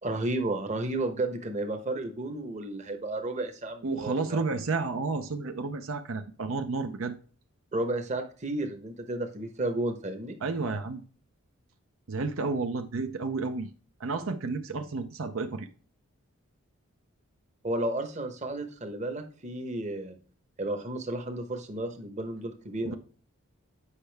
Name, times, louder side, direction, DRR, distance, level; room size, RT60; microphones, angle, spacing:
voice 1, 0.0-4.4 7.7-10.3 17.6-20.2 20.6-22.9, right 2 dB, 30° right, 6 dB, 1.0 m, -32 dB
voice 2, 3.8-7.1 10.4-11.0 12.1-13.7 14.0-15.7 22.8-22.9, right 3 dB, 70° right, 7 dB, 0.6 m, -31 dB
8.3 x 5.5 x 3.4 m, 0.40 s
head